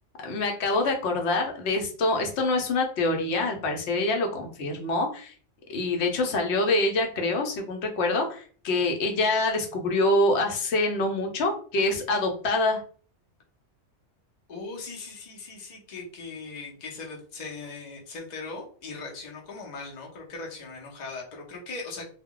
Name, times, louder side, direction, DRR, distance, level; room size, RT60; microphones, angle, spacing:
voice 1, 0.2-5.3 5.7-12.8, left 2 dB, 70° left, 3 dB, 0.9 m, -25 dB
voice 2, 14.5-22.1, left 3 dB, 45° left, -1 dB, 0.7 m, -39 dB
2.2 x 2.2 x 3.6 m, 0.44 s
omnidirectional pair, 1.2 m